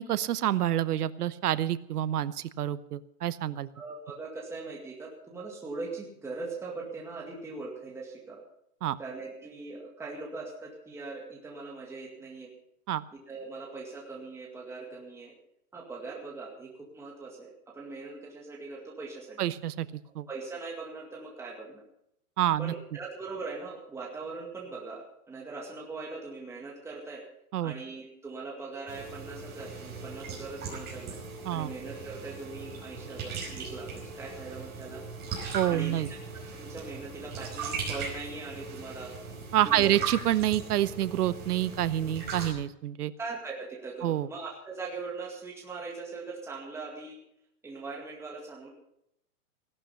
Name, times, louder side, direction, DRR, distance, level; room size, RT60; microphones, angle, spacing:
voice 1, 0.0-3.7 8.8-9.0 12.9-13.0 19.4-19.9 20.2-20.3 22.4-22.7 27.5-27.7 31.5-31.7 35.5-36.1 39.5-43.1 44.0-44.3, right 12 dB, 80° right, 16 dB, 1.0 m, -27 dB
voice 2, 3.7-8.4 9.0-12.5 13.1-15.4 15.7-19.5 20.0-21.8 22.6-27.3 27.6-31.2 31.5-35.0 35.7-36.0 36.3-39.1 39.6-40.0 43.2-47.2 47.6-48.7, right 3 dB, 5° right, -2 dB, 2.0 m, -41 dB
sound 1, 28.9-42.5, right 4 dB, 20° right, 5.3 m, -39 dB
17.0 x 12.5 x 5.5 m, 0.77 s
hypercardioid pair, 155°, 45 cm